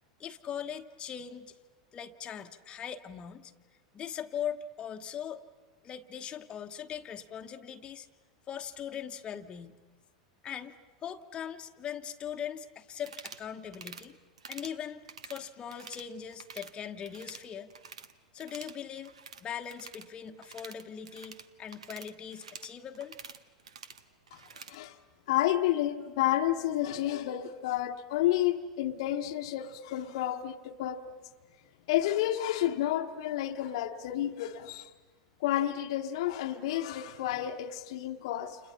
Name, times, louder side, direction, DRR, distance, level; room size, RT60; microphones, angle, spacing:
voice 1, 0.2-1.6 1.9-3.5 3.9-5.4 5.8-8.1 8.5-9.8 10.4-10.8 11.0-14.2 14.5-17.7 18.3-19.1 19.4-23.2, left 8 dB, 30° left, 1.1 m, -40 dB
sound 1, 13.0-13.5 13.7-14.1 14.4-14.8 15.1-16.1 16.3-16.7 17.0-18.1 18.4-24.8, right 6 dB, 75° right, 1.1 m, -48 dB
voice 2, 25.3-31.1 31.9-34.9 35.4-38.6, left 13 dB, 60° left, 1.1 m, -30 dB
30.0 x 28.5 x 5.7 m
figure-of-eight pair, 90°, 3 cm